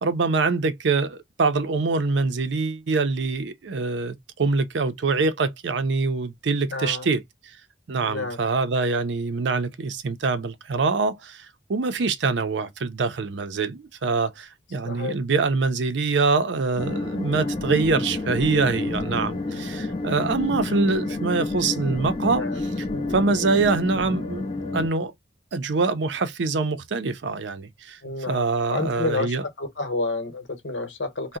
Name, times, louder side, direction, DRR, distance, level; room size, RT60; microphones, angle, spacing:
voice 1, 0.0-7.2 7.9-22.4 23.1-24.5 24.7-25.1 25.5-28.0 28.3-29.4, right 4 dB, 65° right, 0.5 m, -24 dB
voice 2, 6.7-7.1 8.0-8.4 14.8-15.2 22.2-22.6 22.9-23.2 28.0-28.4 28.7-31.4, left 3 dB, 70° left, 1.0 m, -30 dB
sound 1, 16.8-24.9, left 2 dB, 30° left, 0.6 m, -29 dB
2.7 x 2.1 x 3.6 m
head